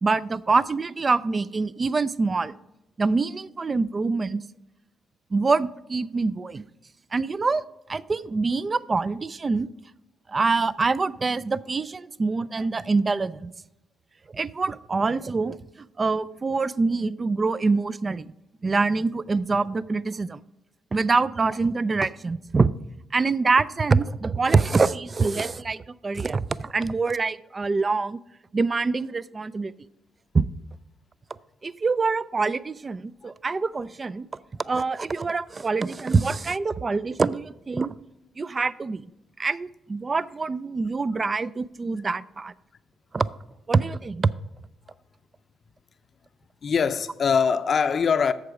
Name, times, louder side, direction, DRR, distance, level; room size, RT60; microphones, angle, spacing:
voice 1, 0.0-2.6 3.0-4.4 5.3-6.6 7.1-7.6 7.9-9.7 10.3-13.5 14.3-15.6 16.0-18.3 18.6-20.4 20.9-22.7 23.1-28.2 28.5-29.7 30.3-30.4 31.6-34.3 34.6-37.9 38.4-39.0 39.4-42.5 43.1-43.3 43.7-44.3, right 4 dB, 30° right, 0.3 m, -25 dB
voice 2, 46.6-48.3, left 6 dB, 50° left, 0.5 m, -22 dB
8.0 x 6.9 x 4.7 m
cardioid pair, 90°, 0 cm